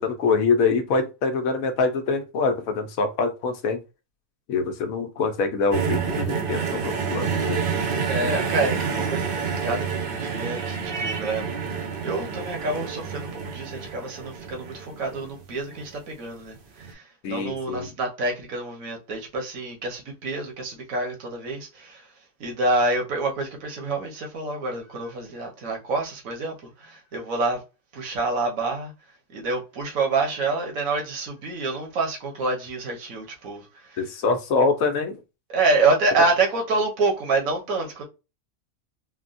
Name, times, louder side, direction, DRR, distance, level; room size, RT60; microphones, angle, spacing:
voice 1, 0.0-3.8 4.5-7.7 17.2-17.9 34.0-35.2, left 4 dB, 85° left, 1.1 m, -24 dB
sound 1, 5.7-15.9 16.8-16.9, right 6 dB, 55° right, 0.7 m, -28 dB
voice 2, 8.1-22.1 22.4-27.6 27.9-28.9 29.3-34.0 35.5-38.0, right 3 dB, 80° right, 1.4 m, -27 dB
3.7 x 2.2 x 2.5 m
omnidirectional pair, 1.4 m